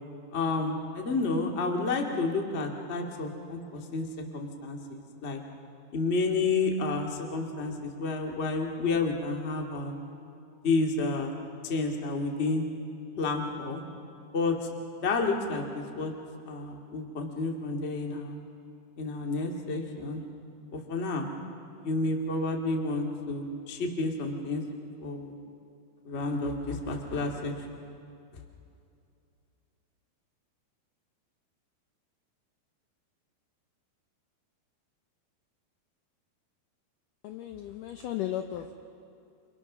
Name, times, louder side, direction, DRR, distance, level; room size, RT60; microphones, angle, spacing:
voice 1, 0.3-4.0 4.3-5.4 5.9-9.9 10.6-11.3 11.6-12.7 13.2-13.8 14.3-14.5 15.0-16.1 16.4-18.4 19.0-20.2 20.7-21.3 21.8-24.6 25.0-25.3 26.0-27.5, left 3 dB, 35° left, 1 dB, 1.0 m, -30 dB
voice 2, 37.2-38.7, left 12 dB, 85° left, 6 dB, 1.8 m, -35 dB
29.0 x 27.5 x 6.1 m, 2.6 s
omnidirectional pair, 4.9 m